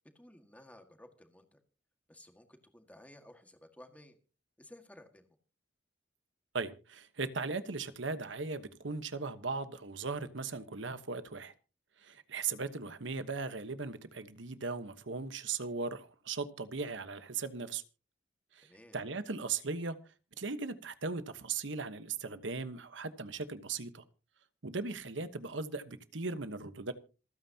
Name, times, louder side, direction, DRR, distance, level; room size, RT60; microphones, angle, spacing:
voice 1, 0.2-1.6 2.1-4.2 4.6-5.3 18.6-19.0, left 1 dB, 10° left, 1.8 m, -56 dB
voice 2, 6.5-11.5 12.0-17.8 18.5-20.0 20.4-24.0 24.6-26.9, right 4 dB, 75° right, 1.2 m, -38 dB
27.0 x 9.2 x 2.9 m
head